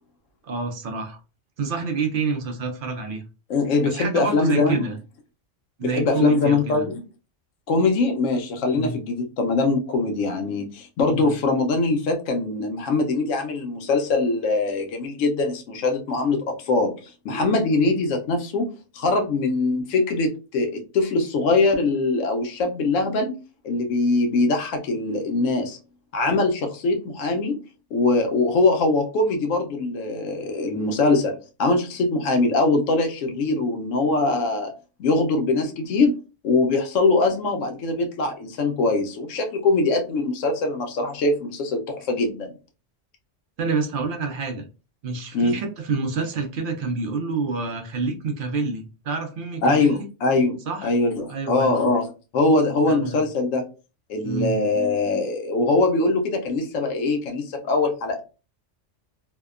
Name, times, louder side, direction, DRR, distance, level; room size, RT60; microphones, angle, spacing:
voice 1, 0.4-1.2 1.6-3.2 3.8-5.0 5.8-6.8 8.7-9.0 11.1-11.3 43.6-44.6 45.0-50.1 50.7-50.9 51.3-51.9 52.9-53.2 54.2-54.6, right 4 dB, 60° right, 5 dB, 0.6 m, -28 dB
voice 2, 3.5-4.9 5.8-7.0 7.7-23.3 23.6-25.8 26.1-27.6 27.9-34.7 35.0-36.2 36.4-42.5 45.3-45.5 49.6-53.6 54.1-58.2, left 3 dB, 90° left, 4 dB, 1.0 m, -22 dB
2.7 x 2.1 x 2.3 m, 0.33 s
omnidirectional pair, 1.3 m